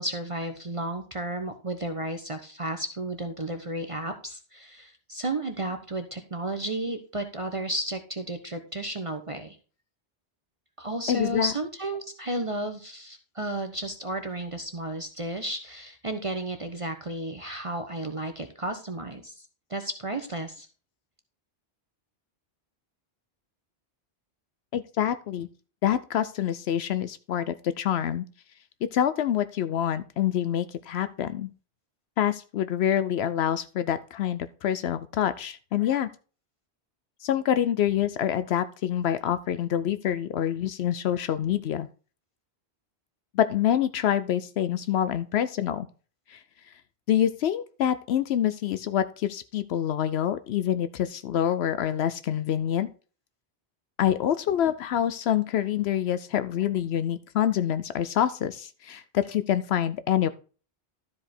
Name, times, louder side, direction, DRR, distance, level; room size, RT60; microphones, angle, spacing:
voice 1, 0.0-9.6 10.8-19.3 19.7-20.7, right 1 dB, 35° right, 6 dB, 0.9 m, -33 dB
voice 2, 11.1-11.6 24.7-25.5 25.8-28.2 28.8-31.5 32.2-36.1 37.2-41.9 43.3-45.9 46.3-46.4 47.1-52.9 54.0-60.3, left 10 dB, 75° left, 13 dB, 0.8 m, -26 dB
12.5 x 5.0 x 4.3 m, 0.37 s
omnidirectional pair, 1.1 m